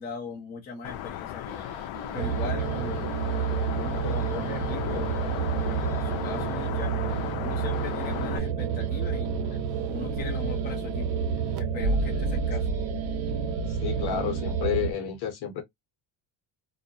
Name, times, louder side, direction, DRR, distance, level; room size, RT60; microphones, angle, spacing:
voice 1, 0.0-3.1 3.5-5.2 5.6-7.1 7.4-9.4 9.9-11.2 11.6-12.7, left 5 dB, 20° left, 0.5 m, -39 dB
sound 1, 0.8-8.4, left 12 dB, 70° left, 0.5 m, -36 dB
sound 2, 1.5-14.7, right 1 dB, 55° right, 0.5 m, -37 dB
sound 3, 2.2-14.9, right 7 dB, 85° right, 0.8 m, -29 dB
voice 2, 13.7-15.6, left 9 dB, 50° left, 0.9 m, -31 dB
2.3 x 2.0 x 2.6 m
cardioid pair, 165°, 49 cm